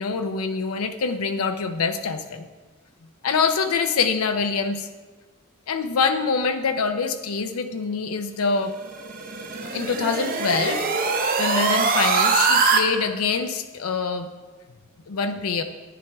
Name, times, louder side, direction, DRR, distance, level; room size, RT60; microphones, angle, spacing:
voice 1, 0.0-2.5 3.2-4.9 5.7-8.8 9.6-10.9 11.4-14.3 15.1-15.6, left 5 dB, 85° left, 7 dB, 0.6 m, -25 dB
sound 1, 8.8-12.8, right 4 dB, 40° right, 0.8 m, -22 dB
11.0 x 9.3 x 3.4 m, 1.3 s
head